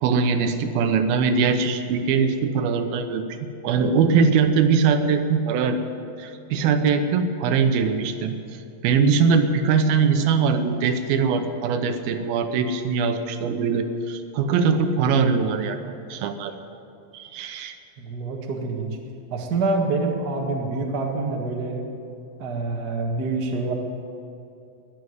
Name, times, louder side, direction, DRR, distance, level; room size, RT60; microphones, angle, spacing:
voice 1, 0.0-3.2 3.6-5.8 6.2-8.4 8.8-15.8 16.1-16.5 17.1-17.8, right 5 dB, 80° right, 8 dB, 2.7 m, -21 dB
voice 2, 18.0-19.0 19.3-21.8 22.4-23.7, right 3 dB, 45° right, 1 dB, 1.3 m, -26 dB
20.5 x 7.2 x 9.5 m, 2.6 s
omnidirectional pair, 4.3 m